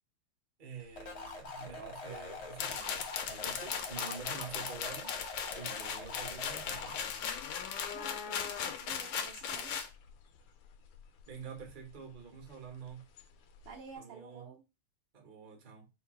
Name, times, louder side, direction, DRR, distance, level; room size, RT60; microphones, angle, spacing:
voice 1, 0.6-5.1 5.6-7.0 11.3-13.1 14.0-14.5 15.1-15.9, right 6 dB, 40° right, 0.7 m, -47 dB
sound 1, 0.8-14.0, left 7 dB, 85° left, 1.5 m, -50 dB
sound 2, 1.0-7.0, left 3 dB, 45° left, 0.8 m, -45 dB
sound 3, 2.6-9.9, left 7 dB, 70° left, 1.1 m, -38 dB
voice 2, 7.9-9.9 13.7-14.6, right 6 dB, 70° right, 2.0 m, -50 dB
4.4 x 2.2 x 4.6 m
omnidirectional pair, 2.4 m